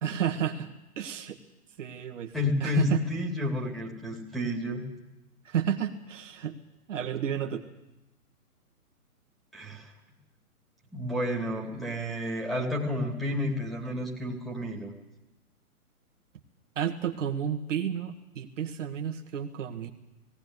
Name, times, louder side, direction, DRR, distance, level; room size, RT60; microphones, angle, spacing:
voice 1, 0.0-1.4 1.8-2.3 2.6-3.0 5.5-6.5 6.9-7.6 16.8-19.9, right 9 dB, 55° right, 4 dB, 1.8 m, -31 dB
voice 2, 2.3-4.9 9.5-9.9 10.9-14.9, left 1 dB, ahead, -4 dB, 2.6 m, -30 dB
18.0 x 17.5 x 9.5 m, 0.96 s
figure-of-eight pair, 130°, 45 cm